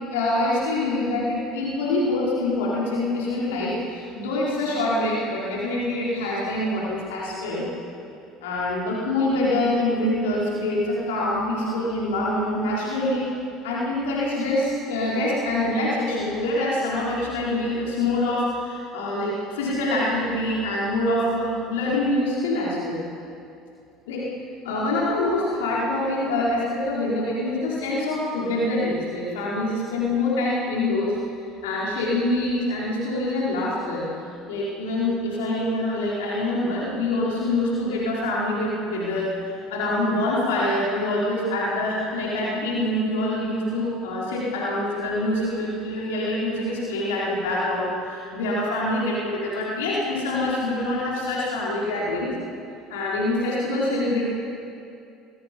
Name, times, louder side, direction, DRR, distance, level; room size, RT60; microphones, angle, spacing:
voice 1, 0.1-7.6 8.4-13.3 13.6-23.0 24.1-24.2 24.6-31.1 31.6-34.1 34.5-52.3 52.9-54.3, left 1 dB, 70° left, -6 dB, 4.8 m, -25 dB
27.0 x 23.0 x 5.5 m, 2.5 s
figure-of-eight pair, 60°, 0 cm